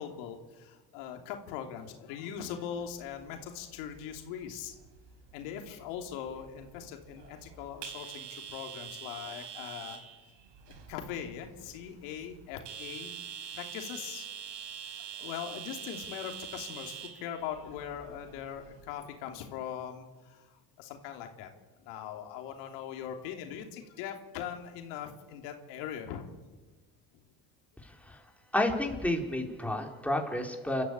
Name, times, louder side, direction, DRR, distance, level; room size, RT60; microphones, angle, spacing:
voice 1, 0.0-4.7 5.3-10.1 10.9-13.1 13.5-14.3 15.0-21.5 21.8-26.2, left 9 dB, 80° left, 4 dB, 3.1 m, -41 dB
sound 1, 2.8-18.9, right 8 dB, 70° right, 4.9 m, -46 dB
voice 2, 28.5-30.8, left 1 dB, 5° left, 1 dB, 4.6 m, -30 dB
28.5 x 14.0 x 8.6 m, 1.2 s
hypercardioid pair, 75°, 43 cm